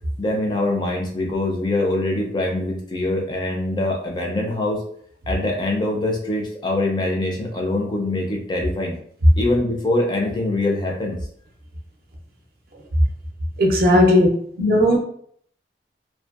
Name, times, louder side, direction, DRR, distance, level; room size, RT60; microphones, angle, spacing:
voice 1, 0.2-4.8 5.3-9.0 9.4-11.2, left 2 dB, 25° left, -1 dB, 0.4 m, -23 dB
voice 2, 13.6-14.3 14.6-15.0, left 1 dB, 55° right, 1 dB, 0.4 m, -15 dB
2.6 x 2.1 x 2.3 m, 0.64 s
head